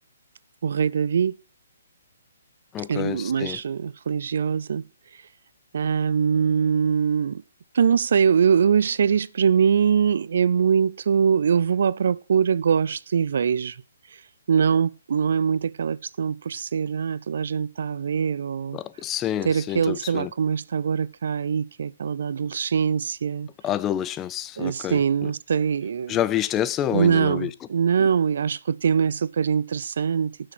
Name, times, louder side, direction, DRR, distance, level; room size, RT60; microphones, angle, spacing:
voice 1, 0.6-1.3 2.9-4.8 5.7-7.4 7.7-13.8 14.5-18.8 19.4-23.5 24.6-26.2 26.9-30.5, right 7 dB, 65° right, 0.4 m, -23 dB
voice 2, 2.7-3.6 18.7-20.3 23.6-25.3 26.1-27.5 28.0-28.1, left 11 dB, 20° left, 0.4 m, -28 dB
10.0 x 6.3 x 6.1 m
hypercardioid pair, 140°, 0 cm